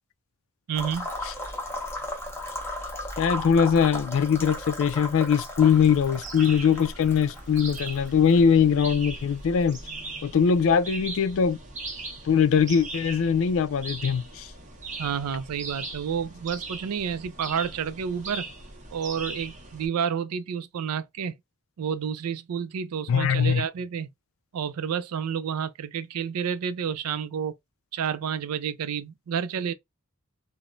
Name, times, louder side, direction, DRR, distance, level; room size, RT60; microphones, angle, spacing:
sound 1, 0.7-10.5, left 1 dB, 10° left, 0.7 m, -36 dB
voice 1, 0.7-1.1 15.0-18.5 18.9-21.3 21.8-24.1 24.5-27.5 27.9-29.7, right 7 dB, 80° right, 0.4 m, -30 dB
voice 2, 3.2-9.8 10.2-11.6 12.3-14.5 23.1-23.6, left 7 dB, 65° left, 0.4 m, -21 dB
sound 2, 5.6-19.9, right 3 dB, 35° right, 0.8 m, -40 dB
3.0 x 2.1 x 2.4 m
head